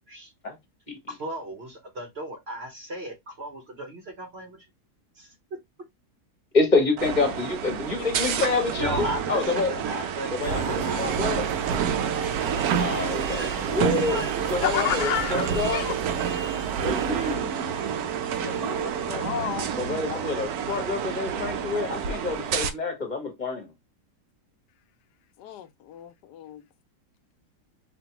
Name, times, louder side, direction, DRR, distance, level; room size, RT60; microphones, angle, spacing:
voice 1, 1.1-4.6 5.2-5.6 8.8-13.7 13.9-15.0, right 1 dB, 50° right, 0.9 m, -37 dB
voice 2, 6.5-9.7 10.3-11.4 12.8-14.2 14.5-15.9 16.8-17.6 19.8-23.7, left 3 dB, 30° left, 1.2 m, -27 dB
sound 1, 7.0-22.7, right 7 dB, 70° right, 1.1 m, -29 dB
sound 2, 10.4-17.4, right 9 dB, 90° right, 1.2 m, -35 dB
voice 3, 14.6-16.0 17.1-17.2 18.4-19.7 25.4-26.6, left 12 dB, 85° left, 1.2 m, -31 dB
5.1 x 2.6 x 2.8 m
omnidirectional pair, 1.7 m